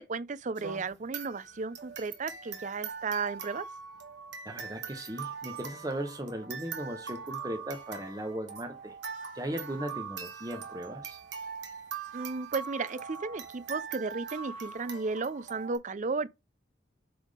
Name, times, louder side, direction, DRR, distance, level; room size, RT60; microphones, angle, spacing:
voice 1, 0.1-3.7 12.1-16.3, right 4 dB, 45° right, 0.5 m, -34 dB
sound 1, 0.6-15.8, right 6 dB, 85° right, 2.1 m, -42 dB
voice 2, 4.4-9.0 9.3-11.2, right 1 dB, 20° right, 1.0 m, -37 dB
7.9 x 3.6 x 5.0 m
head